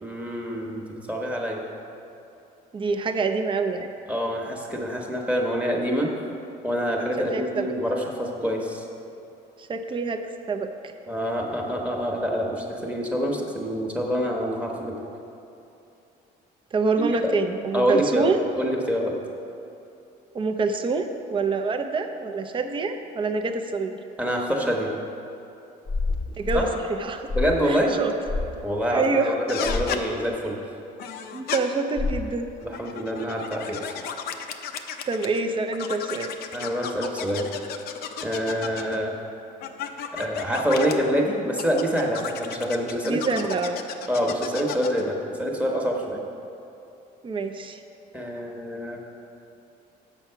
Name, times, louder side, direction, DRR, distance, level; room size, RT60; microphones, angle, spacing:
voice 1, 0.0-1.6 4.1-6.1 6.6-8.8 11.1-15.0 17.0-17.1 17.7-18.3 18.6-19.1 24.2-24.9 26.5-26.7 27.3-28.0 28.6-30.6 32.6-33.9 36.5-37.5 38.2-39.1 40.1-43.2 44.1-46.2 48.1-49.0, equal, 10° right, 0 dB, 1.1 m, -26 dB
voice 2, 2.7-3.9 7.3-7.7 9.6-10.9 16.7-18.4 20.3-24.0 26.4-26.7 27.0-27.3 27.6-28.1 28.9-29.3 31.3-32.5 35.1-36.3 43.0-43.8 47.2-47.8, right 4 dB, 30° right, 6 dB, 0.6 m, -26 dB
sound 1, 25.9-26.7 27.3-27.7 28.3-28.5 29.6-29.9 32.0-32.3, left 3 dB, 30° left, 0.8 m, -28 dB
sound 2, 29.5-30.0 31.0-31.6 32.6-35.4 35.7-39.0 39.6-40.9 41.6-45.0, left 8 dB, 70° left, 0.6 m, -34 dB
7.0 x 5.9 x 5.6 m, 2.8 s
cardioid pair, 110°, 17 cm